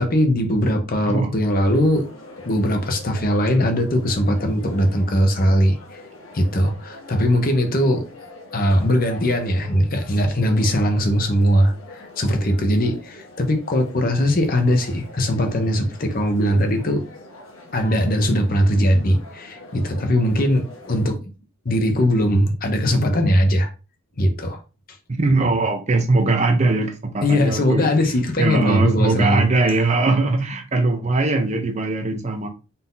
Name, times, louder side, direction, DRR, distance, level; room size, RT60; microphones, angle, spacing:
voice 1, 0.0-2.1 2.4-5.8 6.3-8.0 8.5-17.0 17.7-21.2 21.6-23.7 24.2-24.6 27.2-29.4, equal, 45° left, 0.8 m, -20 dB
sound 1, 1.4-21.1, left 2 dB, 75° left, 1.2 m, -43 dB
voice 2, 25.1-27.9 28.4-32.5, right 3 dB, 35° right, 0.6 m, -20 dB
4.1 x 2.7 x 3.7 m
head